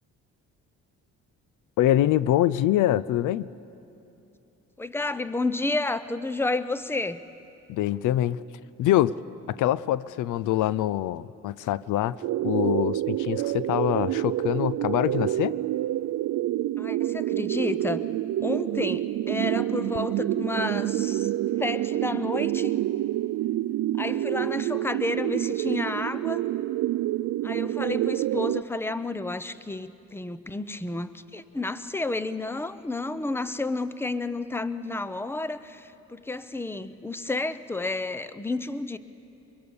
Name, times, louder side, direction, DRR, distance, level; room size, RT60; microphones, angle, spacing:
voice 1, 1.8-3.5 7.7-8.4 8.8-9.1 9.5-12.2 12.4-15.5, left 13 dB, 80° left, 0.5 m, -24 dB
voice 2, 4.8-7.2 16.8-18.0 18.4-21.3 21.6-22.7 24.0-26.4 27.4-39.0, left 2 dB, 10° left, 0.7 m, -31 dB
sound 1, 12.2-28.6, right 14 dB, 65° right, 0.5 m, -27 dB
23.5 x 23.0 x 7.1 m
cardioid pair, 90°, 30 cm